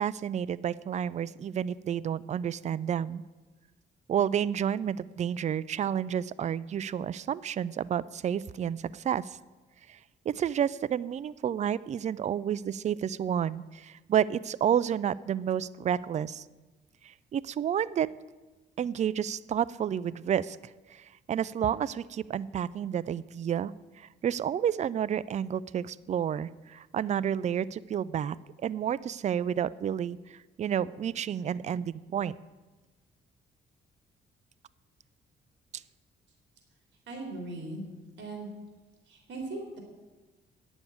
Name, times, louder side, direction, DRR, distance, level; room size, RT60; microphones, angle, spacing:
voice 1, 0.0-3.2 4.1-9.4 9.9-10.0 10.3-16.4 17.0-18.1 18.8-20.6 20.9-23.7 24.0-28.4 28.6-32.3, right 9 dB, 35° right, 19 dB, 0.4 m, -30 dB
voice 2, 37.1-37.8 38.2-38.5 39.0-39.8, right 2 dB, 65° right, 1 dB, 2.9 m, -38 dB
9.3 x 7.1 x 8.4 m, 1.2 s
cardioid pair, 90°, 20 cm